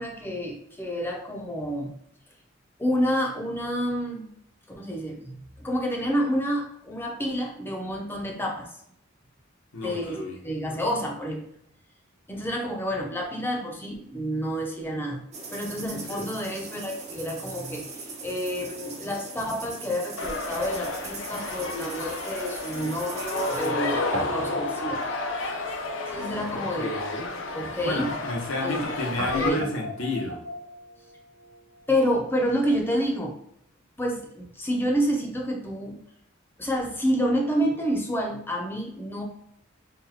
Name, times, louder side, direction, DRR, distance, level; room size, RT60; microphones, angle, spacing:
voice 1, 0.0-1.9 2.8-4.3 4.8-8.7 9.8-11.4 12.3-15.2 15.5-25.0 26.1-26.9 27.5-28.1 28.6-28.8 29.2-29.7 31.9-33.3 34.0-36.0 36.6-39.2, equal, 10° left, 0 dB, 0.5 m, -29 dB
voice 2, 9.7-10.4 16.1-16.3 26.5-27.3 27.8-30.4, left 2 dB, 85° left, 0 dB, 0.9 m, -31 dB
sound 1, 15.3-23.7, right 3 dB, 35° right, 0.6 m, -40 dB
sound 2, 20.2-29.5, left 3 dB, 65° left, 0.5 m, -32 dB
Guitar, 21.0-22.9 23.1-23.3 24.1-32.0, equal, 80° right, 0.6 m, -39 dB
4.0 x 2.3 x 2.7 m, 0.71 s
head